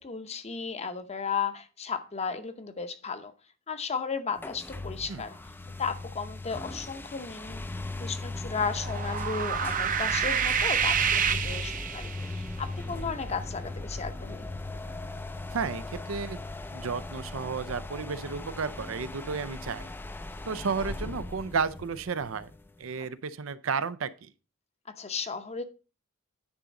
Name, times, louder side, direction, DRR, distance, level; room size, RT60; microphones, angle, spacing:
voice 1, 0.0-3.3 3.7-5.4 5.8-7.6 8.0-14.5 23.0-23.1 24.9-25.6, left 5 dB, 30° left, 0.8 m, -34 dB
sound 1, 4.4-22.9, left 2 dB, 10° left, 0.4 m, -38 dB
sound 2, 8.7-12.4, right 7 dB, 40° right, 0.6 m, -28 dB
voice 2, 15.5-16.4 16.7-19.9 20.5-22.5 22.8-24.3, right 5 dB, 85° right, 0.6 m, -32 dB
9.7 x 3.8 x 5.2 m
head